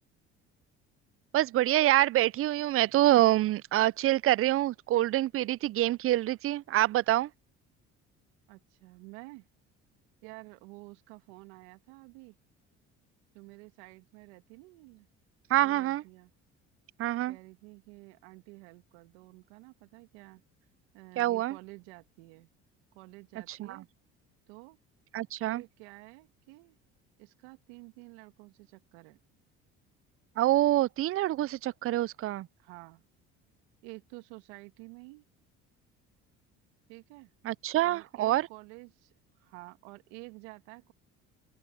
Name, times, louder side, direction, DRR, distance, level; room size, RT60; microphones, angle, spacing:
voice 1, 1.3-7.3 15.5-16.0 17.0-17.4 21.2-21.6 23.5-23.8 25.1-25.6 30.4-32.5 37.4-38.5, right 15 dB, 45° right, 0.4 m, -26 dB
voice 2, 8.5-9.5 10.2-12.4 13.3-15.1 15.5-16.3 17.3-20.4 20.9-22.5 22.9-23.9 24.5-24.8 25.4-26.8 27.2-29.2 32.6-33.0 33.8-35.3 36.9-37.3 37.8-40.9, right 26 dB, 80° right, 2.6 m, -50 dB
open air
hypercardioid pair, 65°, 33 cm